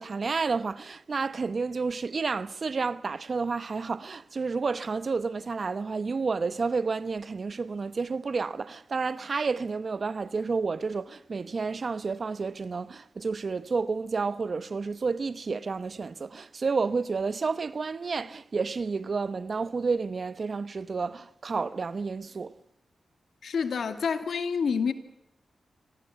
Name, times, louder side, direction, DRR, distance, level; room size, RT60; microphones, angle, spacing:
voice 1, 0.0-22.5, right 4 dB, 55° right, 1.0 m, -30 dB
voice 2, 23.4-24.9, left 6 dB, 75° left, 2.3 m, -28 dB
26.5 x 18.0 x 8.1 m
cardioid pair, 50°, 0 cm